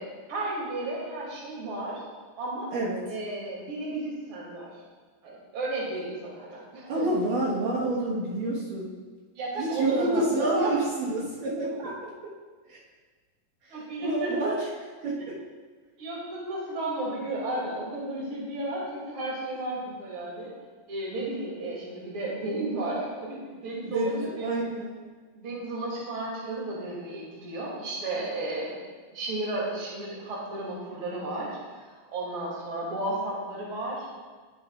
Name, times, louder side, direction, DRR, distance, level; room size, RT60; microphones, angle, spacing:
voice 1, 0.0-2.0 2.4-2.7 3.0-4.7 5.2-7.1 9.3-10.8 13.7-14.6 16.0-20.5 20.9-24.5 25.3-28.8 29.1-34.1, right 2 dB, 40° right, -5 dB, 3.1 m, -33 dB
voice 2, 6.9-8.9 9.6-11.9 12.7-12.8 13.6-14.7 15.0-15.4 23.8-24.9, right 1 dB, 70° right, -7 dB, 2.9 m, -28 dB
18.5 x 6.9 x 2.4 m, 1.4 s
omnidirectional pair, 4.0 m